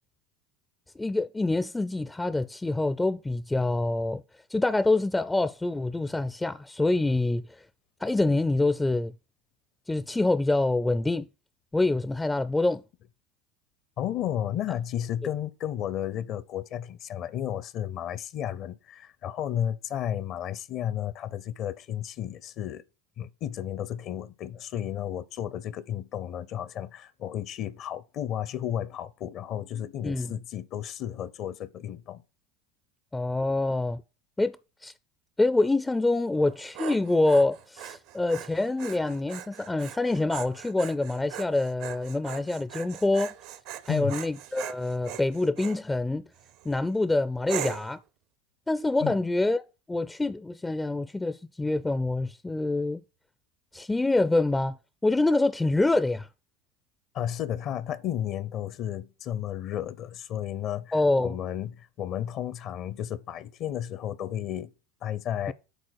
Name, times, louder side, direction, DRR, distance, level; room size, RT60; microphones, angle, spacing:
voice 1, 1.0-4.2 4.5-7.6 8.0-9.1 9.9-11.3 11.7-12.8 30.0-30.4 33.1-34.0 34.4-34.6 34.8-34.9 35.4-43.3 43.9-46.3 46.6-48.0 48.7-53.0 53.7-54.8 55.0-56.3 60.9-61.4 65.5-65.6, left 2 dB, 10° left, 0.4 m, -26 dB
voice 2, 14.0-22.8 23.2-32.2 43.9-44.2 49.0-49.2 57.1-64.7 65.0-65.5, left 10 dB, 50° left, 0.6 m, -33 dB
Dog, 36.4-45.8 46.4-46.8 47.5-48.0, right 11 dB, 60° right, 0.7 m, -40 dB
8.0 x 3.9 x 6.4 m
hypercardioid pair, 85°, 0 cm